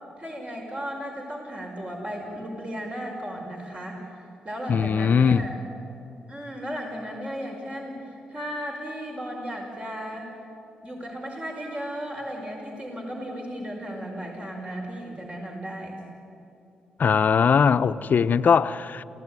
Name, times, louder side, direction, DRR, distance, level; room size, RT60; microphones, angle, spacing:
voice 1, 0.2-4.0 4.4-5.6 6.3-10.3 10.8-15.9, equal, 35° right, 5.5 m, -35 dB
voice 2, 4.7-5.5 17.0-19.0, left 6 dB, 55° left, 0.8 m, -20 dB
28.5 x 17.0 x 9.8 m
hypercardioid pair, 45°, 4 cm